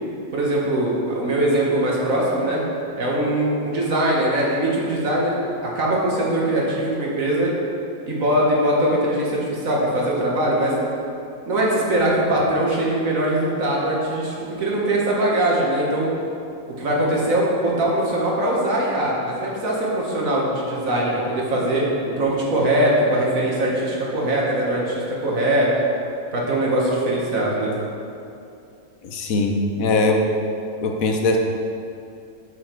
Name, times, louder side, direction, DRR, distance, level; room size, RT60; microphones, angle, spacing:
voice 1, 0.3-2.6 3.0-5.4 5.6-7.5 8.0-10.7 11.5-16.1 16.7-21.8 22.2-25.7 26.3-27.7, right 1 dB, 70° right, -4 dB, 1.8 m, -21 dB
voice 2, 29.0-30.2 30.8-31.4, left 3 dB, 75° left, 3 dB, 1.2 m, -21 dB
7.1 x 6.3 x 4.5 m, 2.6 s
omnidirectional pair, 1.5 m